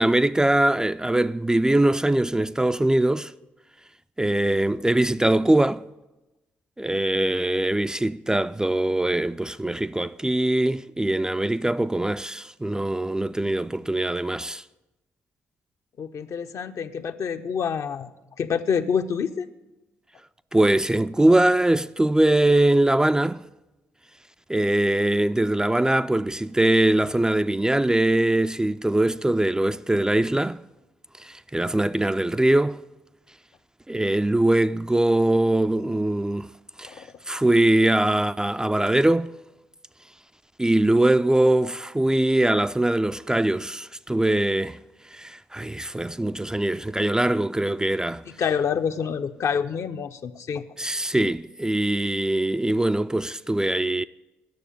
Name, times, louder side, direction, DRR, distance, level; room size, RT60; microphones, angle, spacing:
voice 1, 0.0-3.3 4.2-5.8 6.8-14.6 20.5-23.4 24.5-30.6 31.2-32.8 33.9-36.5 36.8-39.3 40.6-44.8 45.1-48.2 50.8-54.0, right 1 dB, 10° right, 0.3 m, -22 dB
voice 2, 16.0-18.1 18.4-19.5 36.9-37.1 48.4-50.6 51.1-51.2, left 7 dB, 60° left, 0.6 m, -27 dB
9.4 x 6.6 x 8.5 m
hypercardioid pair, 45°, 6 cm